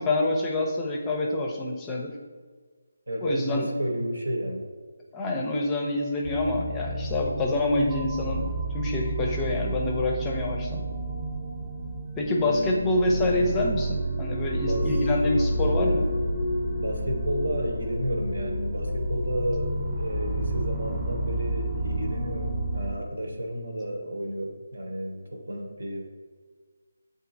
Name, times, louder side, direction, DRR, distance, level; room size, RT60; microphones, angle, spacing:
voice 1, 0.0-2.1 3.2-3.7 5.1-8.4 8.7-10.8 12.2-16.1, left 2 dB, 15° left, 0 dB, 0.5 m, -26 dB
voice 2, 3.1-4.7 12.4-12.7 14.6-15.1 16.8-26.0, equal, 85° right, 1 dB, 1.1 m, -32 dB
sound 1, 6.2-23.0, right 1 dB, 20° right, 0.7 m, -30 dB
7.5 x 2.6 x 2.6 m, 1.5 s
figure-of-eight pair, 160°, 0 cm